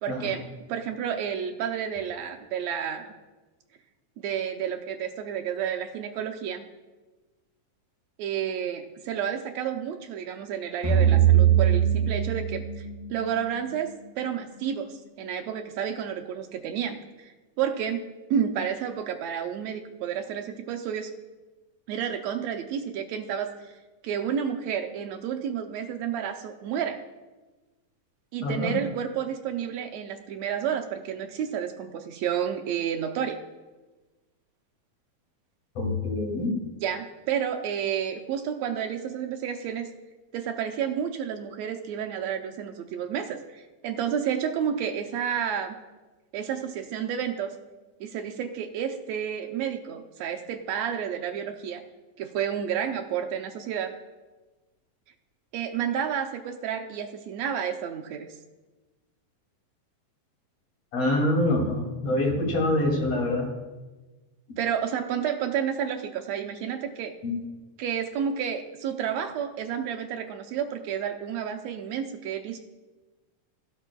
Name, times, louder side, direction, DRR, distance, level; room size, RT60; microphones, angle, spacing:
voice 1, 0.0-3.1 4.2-6.6 8.2-17.3 17.6-21.1 21.9-23.7 24.0-27.0 28.3-33.4 36.8-39.9 40.3-45.8 46.3-47.5 48.0-51.8 52.2-53.9 55.5-58.3 64.6-67.1 67.8-72.6, right 8 dB, 80° right, 5 dB, 1.6 m, -30 dB
sound 1, 10.8-14.1, right 9 dB, 80° left, 5.9 m, -22 dB
voice 2, 28.4-28.7 35.8-36.6 60.9-63.5 67.2-67.4, left 1 dB, 50° left, 0 dB, 3.3 m, -25 dB
16.0 x 12.0 x 2.2 m, 1.2 s
omnidirectional pair, 3.8 m